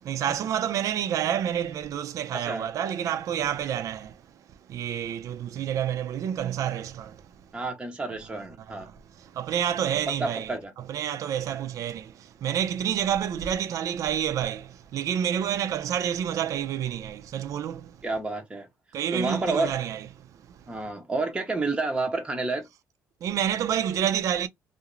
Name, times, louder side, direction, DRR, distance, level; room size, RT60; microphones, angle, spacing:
voice 1, 0.0-4.2 4.7-7.3 8.9-10.5 10.9-18.0 18.9-20.7 23.2-24.5, right 9 dB, 60° right, 0.5 m, -29 dB
voice 2, 2.3-2.7 7.5-8.9 10.1-10.7 18.0-18.7 19.1-19.7 20.7-22.7, right 3 dB, 15° right, 0.6 m, -30 dB
2.5 x 2.0 x 3.0 m
cardioid pair, 100°, 6 cm